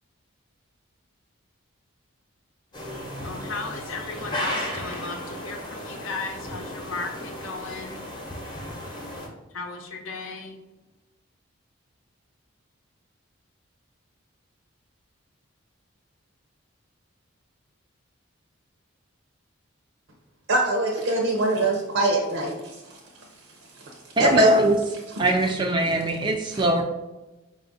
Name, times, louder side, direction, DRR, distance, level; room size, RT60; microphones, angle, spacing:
sound 1, 2.7-9.3, left 1 dB, 20° left, 0.7 m, -35 dB
voice 1, 3.2-8.0 9.5-10.6, left 3 dB, 70° left, 3 dB, 0.6 m, -35 dB
voice 2, 20.5-22.8 24.2-24.5 26.5-26.6, right 2 dB, 70° right, 0 dB, 0.6 m, -23 dB
voice 3, 24.2-24.8 25.2-26.8, right 1 dB, 20° right, 3 dB, 0.3 m, -21 dB
4.9 x 2.4 x 3.8 m, 1.0 s
head